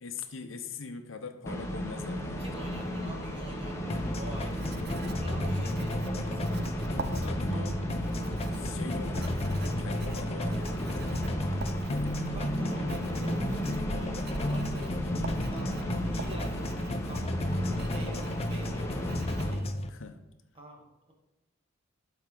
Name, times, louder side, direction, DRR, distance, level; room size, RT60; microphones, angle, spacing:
voice 1, 0.0-2.5 7.1-7.7 8.5-11.4 12.0-12.1 19.9-20.2, left 4 dB, 75° left, 8 dB, 0.8 m, -42 dB
sound 1, 1.5-19.5, equal, 15° left, 0.9 m, -35 dB
voice 2, 2.4-6.8 7.5-7.8 12.2-15.0 15.3-15.8 16.1-16.7 17.0-17.4 17.9-19.7 20.5-21.1, right 1 dB, 30° right, -1 dB, 1.4 m, -47 dB
sound 2, 3.9-19.9, left 1 dB, 30° left, 0.6 m, -33 dB
Writing, 4.4-19.4, right 3 dB, 55° right, 0.5 m, -45 dB
12.0 x 4.6 x 3.8 m, 0.93 s
head